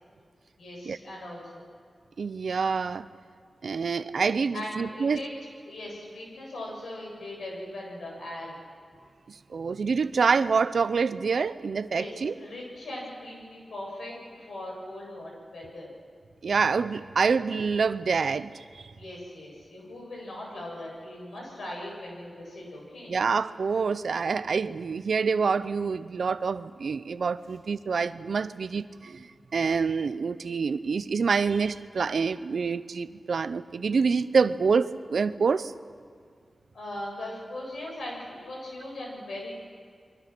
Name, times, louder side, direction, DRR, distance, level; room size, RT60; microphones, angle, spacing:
voice 1, 0.6-1.6 4.5-5.3 5.7-8.5 11.9-15.9 19.0-23.2 36.7-39.5, left 1 dB, 90° left, -2 dB, 7.9 m, -39 dB
voice 2, 2.2-3.1 3.6-5.2 9.5-12.3 16.4-18.5 23.1-29.3 29.5-35.7, right 5 dB, 80° right, 14 dB, 0.7 m, -26 dB
29.0 x 23.0 x 6.2 m, 2.1 s
cardioid pair, 65°, 0 cm